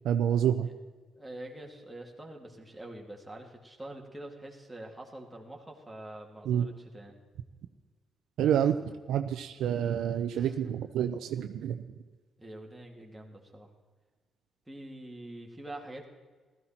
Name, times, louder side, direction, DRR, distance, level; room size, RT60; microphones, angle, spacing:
voice 1, 0.0-0.7 6.5-6.7 8.4-8.8 9.1-11.8, right 9 dB, 80° right, 7 dB, 0.6 m, -28 dB
voice 2, 1.1-7.1 10.3-10.7 12.4-13.7 14.7-16.1, right 1 dB, 5° right, 0 dB, 2.6 m, -45 dB
15.5 x 13.5 x 4.4 m, 1.4 s
cardioid pair, 90°, 0 cm